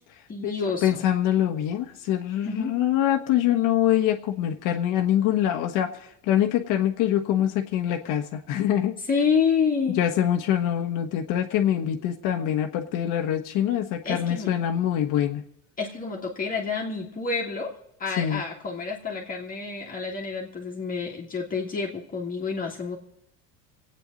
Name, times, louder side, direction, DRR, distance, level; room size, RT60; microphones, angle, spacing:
voice 1, 0.3-1.0 2.4-2.7 9.1-10.0 14.0-14.5 15.8-23.0, left 5 dB, 25° left, -1 dB, 1.9 m, -28 dB
voice 2, 0.8-9.0 9.9-15.4 18.2-18.4, left 11 dB, 60° left, 4 dB, 1.3 m, -24 dB
27.0 x 9.1 x 4.0 m, 0.77 s
cardioid pair, 155°, 35 cm